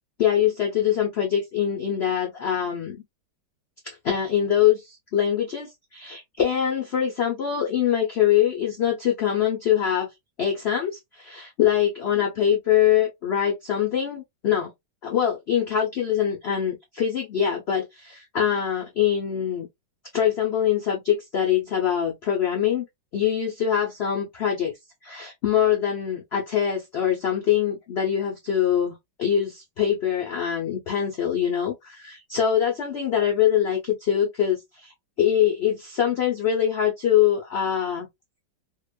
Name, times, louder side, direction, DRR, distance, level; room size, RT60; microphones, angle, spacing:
voice 1, 0.2-3.0 3.8-10.1 10.4-14.7 15.0-19.7 20.1-22.9 23.1-24.7 25.0-34.9 35.2-38.1, left 9 dB, 85° left, 0.5 m, -23 dB
2.9 x 2.2 x 2.2 m
omnidirectional pair, 1.9 m